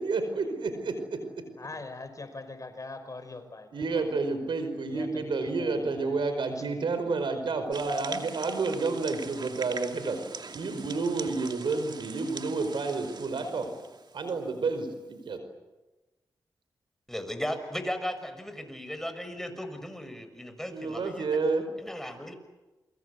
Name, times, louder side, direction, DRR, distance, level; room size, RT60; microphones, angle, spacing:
voice 1, 0.0-1.4 3.7-10.2 10.5-13.7 14.1-15.4 20.6-21.6, right 3 dB, 75° right, 8 dB, 5.0 m, -30 dB
voice 2, 1.6-4.0 4.9-6.2, left 3 dB, 40° left, 9 dB, 5.0 m, -42 dB
sound 1, 7.7-14.5, right 4 dB, 60° right, 2.4 m, -42 dB
voice 3, 17.1-21.3 21.8-22.3, equal, 5° left, 8 dB, 6.4 m, -36 dB
29.0 x 23.5 x 8.3 m, 1.1 s
cardioid pair, 45°, 8 cm